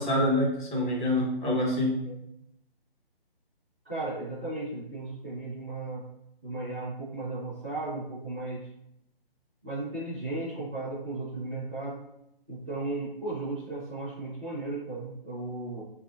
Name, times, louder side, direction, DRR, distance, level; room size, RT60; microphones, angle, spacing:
voice 1, 0.0-2.1, left 1 dB, 55° left, -3 dB, 1.3 m, -26 dB
voice 2, 3.8-6.0 6.4-8.7 9.6-12.0 12.5-15.8, right 2 dB, 10° right, -12 dB, 0.4 m, -35 dB
3.2 x 2.6 x 2.5 m, 0.79 s
figure-of-eight pair, 150°, 30 cm